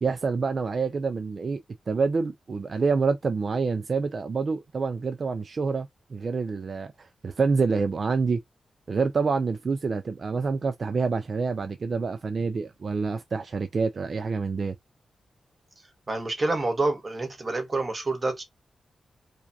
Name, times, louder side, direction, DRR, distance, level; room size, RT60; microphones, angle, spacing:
voice 1, 0.0-1.6 1.9-8.4 8.9-14.7, right 4 dB, 45° right, 0.3 m, -27 dB
voice 2, 16.1-18.4, right 2 dB, 30° right, 1.1 m, -27 dB
4.8 x 2.3 x 2.6 m
wide cardioid pair, 130°, 0 cm